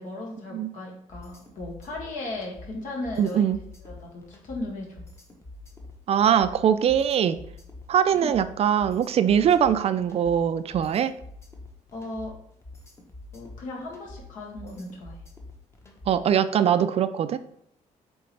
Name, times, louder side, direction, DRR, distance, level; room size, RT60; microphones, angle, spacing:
voice 1, 0.0-3.4 3.8-5.0 8.2-8.3 11.9-12.3 13.3-15.2, left 2 dB, 70° left, -1 dB, 2.1 m, -36 dB
sound 1, 1.1-16.3, left 2 dB, 20° left, 1.0 m, -46 dB
voice 2, 3.2-3.6 6.1-7.4 7.9-11.1 16.1-17.4, right 9 dB, 50° right, 12 dB, 0.4 m, -22 dB
7.7 x 3.9 x 3.3 m, 0.72 s
cardioid pair, 135°, 14 cm